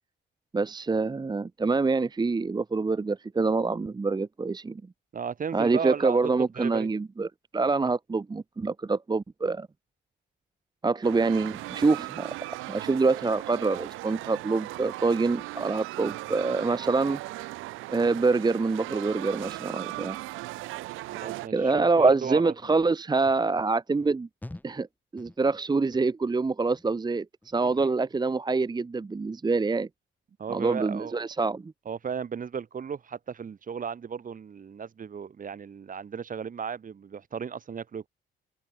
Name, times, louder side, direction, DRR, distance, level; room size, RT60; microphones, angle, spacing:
voice 1, 0.5-4.8 5.5-9.7 10.8-12.3 12.7-17.5 17.9-20.2 21.5-24.3 24.6-24.9 25.1-29.9 30.5-31.7, right 3 dB, 20° right, 0.9 m, -26 dB
voice 2, 5.1-6.2 6.6-6.9 21.1-22.5 27.7-27.9 30.4-31.2 31.9-38.1, right 7 dB, 45° right, 1.8 m, -35 dB
sound 1, 11.0-21.5, right 19 dB, 90° right, 0.5 m, -38 dB
sound 2, 23.2-23.4 24.0-24.1 24.4-24.9 25.2-25.6 25.9-26.3 26.7-27.1 27.4-27.8 28.2-28.3, left 1 dB, 10° left, 1.4 m, -46 dB
cardioid pair, 90°, 20 cm